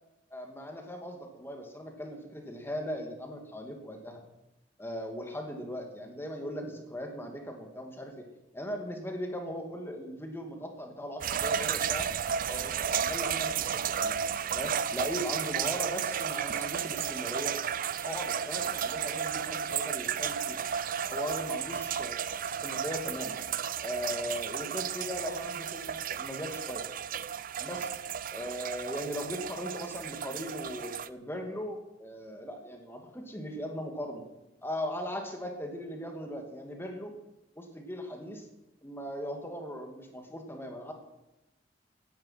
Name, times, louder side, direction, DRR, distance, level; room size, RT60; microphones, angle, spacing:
voice 1, 0.3-4.2 4.8-12.1 12.5-14.2 14.5-17.5 18.0-20.6 21.1-22.2 22.5-23.4 23.8-26.8 27.6-27.9 28.3-34.2 34.6-37.1 37.6-38.5 38.8-40.9, equal, 15° left, 3 dB, 2.2 m, -38 dB
sound 1, 11.2-31.1, right 8 dB, 50° right, 0.5 m, -33 dB
15.5 x 10.5 x 5.7 m, 0.95 s
head